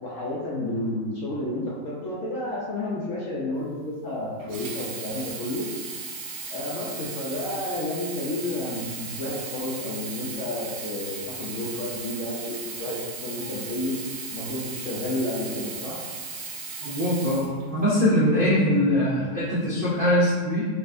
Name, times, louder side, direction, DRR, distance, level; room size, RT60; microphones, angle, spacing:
voice 1, 0.0-5.7 6.5-13.9 14.3-16.0, left 1 dB, 65° left, -5 dB, 0.8 m, -31 dB
Sink (filling or washing), 4.4-18.2 18.9-19.0, right 4 dB, 70° right, 1.0 m, -36 dB
voice 2, 16.8-20.6, equal, 90° right, -8 dB, 0.4 m, -22 dB
4.6 x 2.3 x 2.5 m, 1.5 s
omnidirectional pair, 1.9 m